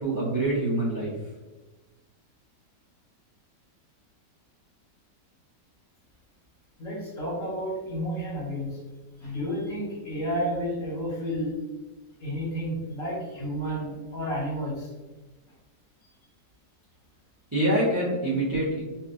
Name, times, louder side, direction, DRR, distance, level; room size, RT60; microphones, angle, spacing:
voice 1, 0.0-1.1 17.5-18.8, right 1 dB, 20° right, -9 dB, 0.6 m, -25 dB
voice 2, 6.8-8.8 9.2-11.6 12.2-14.9, equal, 55° left, -6 dB, 1.2 m, -31 dB
3.1 x 2.7 x 2.5 m, 1.2 s
omnidirectional pair, 1.9 m